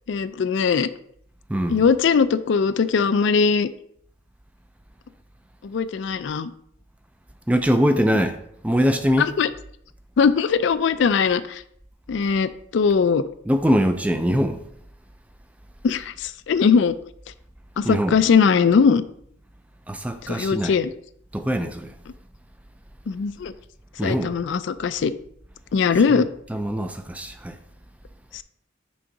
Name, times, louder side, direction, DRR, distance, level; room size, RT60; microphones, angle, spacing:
voice 1, 0.1-0.9 1.7-3.7 5.6-6.5 9.2-9.5 10.2-11.6 12.1-13.2 15.8-17.0 17.8-19.0 20.2-20.9 23.1-23.5 24.0-25.1 25.7-26.3 28.3-28.4, left 5 dB, 70° left, 0.3 m, -20 dB
voice 2, 7.5-8.4 8.6-9.3 13.5-14.6 17.8-18.2 19.9-20.7 21.3-22.0 24.0-24.3 26.1-26.2 26.5-27.6, equal, 5° right, 0.3 m, -22 dB
6.2 x 3.9 x 4.6 m
head